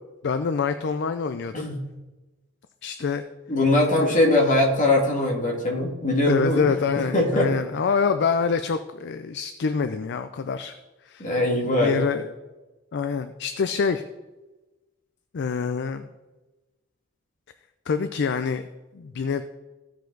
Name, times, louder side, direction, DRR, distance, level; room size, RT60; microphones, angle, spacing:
voice 1, 0.2-1.7 2.8-3.2 4.0-4.1 6.3-10.8 11.0-11.3 11.8-12.2 12.9-14.0 15.3-16.1 17.9-18.6 18.9-19.4, left 5 dB, 55° left, 10 dB, 0.4 m, -26 dB
voice 2, 3.5-6.6 7.1-7.5 11.2-12.0, left 1 dB, 40° left, -1 dB, 2.0 m, -21 dB
15.0 x 5.1 x 3.9 m, 1.1 s
head